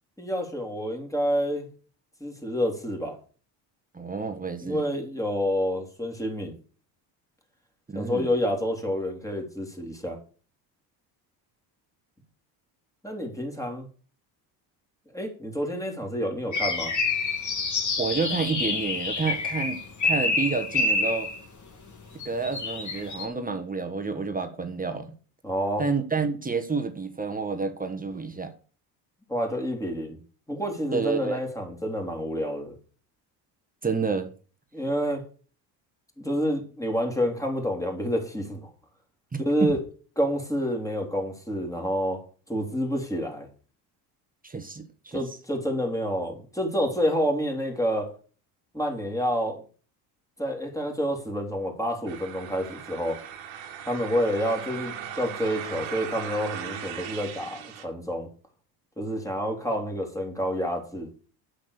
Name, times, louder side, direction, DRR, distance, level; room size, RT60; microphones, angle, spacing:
voice 1, 0.2-1.7 2.2-3.2 4.6-6.5 7.9-10.2 13.0-13.9 15.1-16.9 25.4-25.9 29.3-30.2 30.5-32.7 34.7-35.3 36.2-38.7 39.4-39.8 40.2-43.5 45.1-48.1 48.7-49.6 50.4-53.2 53.9-58.3 59.0-61.1, equal, 5° left, 2 dB, 3.4 m, -28 dB
voice 2, 3.9-4.8 7.9-8.3 18.0-21.3 22.2-25.1 25.8-28.5 30.9-31.4 33.8-34.3 39.3-39.7 44.4-45.2, right 4 dB, 20° right, 7 dB, 1.6 m, -29 dB
sound 1, 16.5-21.4 22.2-23.3, left 3 dB, 40° left, 2.9 m, -27 dB
sound 2, 52.1-57.8, right 8 dB, 75° right, 2.1 m, -38 dB
8.5 x 6.6 x 6.7 m, 0.40 s
supercardioid pair, 80°, 47 cm